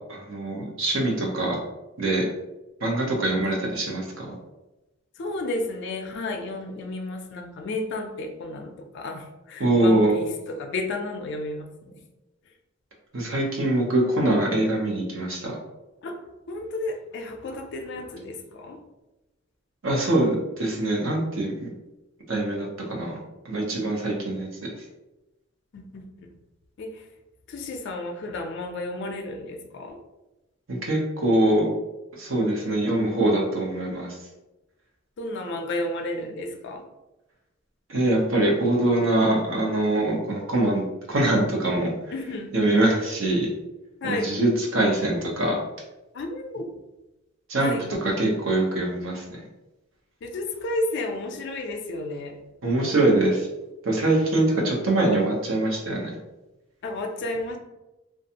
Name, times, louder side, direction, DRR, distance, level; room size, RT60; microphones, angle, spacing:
voice 1, 0.1-1.6 2.0-2.3 2.8-4.3 9.6-10.2 13.1-15.6 19.8-21.7 22.3-23.2 23.5-24.7 30.7-31.7 32.2-34.1 37.9-40.8 41.1-41.9 42.5-43.5 44.0-45.6 47.5-47.7 48.0-49.4 52.6-53.5 53.8-56.1, right 1 dB, 80° right, -2 dB, 0.8 m, -23 dB
voice 2, 5.2-11.7 16.0-16.1 16.5-18.8 25.7-26.3 26.8-27.0 27.5-30.0 35.2-36.8 42.1-42.5 44.0-44.3 46.1-46.7 47.6-47.9 50.2-52.4 56.8-57.6, left 2 dB, 60° left, 3 dB, 0.4 m, -32 dB
2.5 x 2.3 x 2.8 m, 1.0 s
head